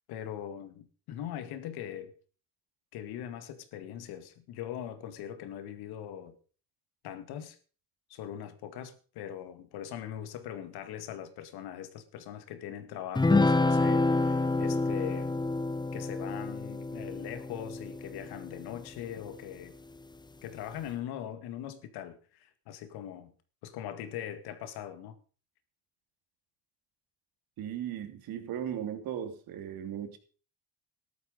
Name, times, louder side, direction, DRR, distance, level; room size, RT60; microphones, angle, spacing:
voice 1, 0.1-2.1 2.9-6.4 7.0-7.6 8.1-15.3 15.9-19.7 20.4-23.3 23.6-25.2, left 10 dB, 85° left, 2.0 m, -41 dB
sound 1, 13.2-18.8, left 3 dB, 10° left, 0.9 m, -28 dB
voice 2, 27.6-30.2, right 9 dB, 70° right, 3.1 m, -37 dB
13.5 x 12.0 x 5.2 m
cardioid pair, 120°, 37 cm